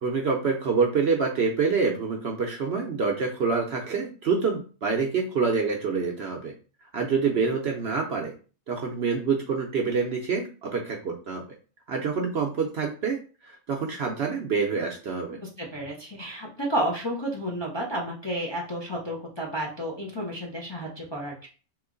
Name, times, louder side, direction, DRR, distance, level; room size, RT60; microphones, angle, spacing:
voice 1, 0.0-6.5 6.9-8.3 8.7-11.4 11.9-13.2 13.4-15.4, right 5 dB, 60° right, 1 dB, 0.7 m, -26 dB
voice 2, 15.3-21.5, right 1 dB, 30° left, -2 dB, 0.5 m, -31 dB
3.1 x 2.9 x 3.7 m, 0.36 s
omnidirectional pair, 1.5 m